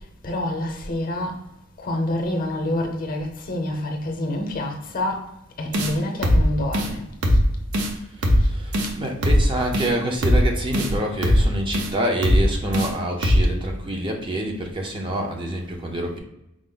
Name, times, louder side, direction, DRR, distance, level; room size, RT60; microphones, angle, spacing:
voice 1, 0.2-1.3 1.8-5.2 5.6-7.0, left 1 dB, 40° left, 0.7 m, -27 dB
sound 1, 5.7-5.9 6.2-6.4 6.7-6.9 7.2-7.4 7.7-7.9 8.2-8.4 8.7-8.9 9.2-9.4 9.7-9.9 10.2-10.4 10.7-10.9 11.2-11.4 11.7-11.9 12.2-12.4 12.7-12.9 13.2-13.4, equal, 70° right, 0.7 m, -18 dB
voice 2, 8.2-16.2, right 1 dB, 25° right, 0.5 m, -27 dB
4.9 x 2.0 x 3.7 m
head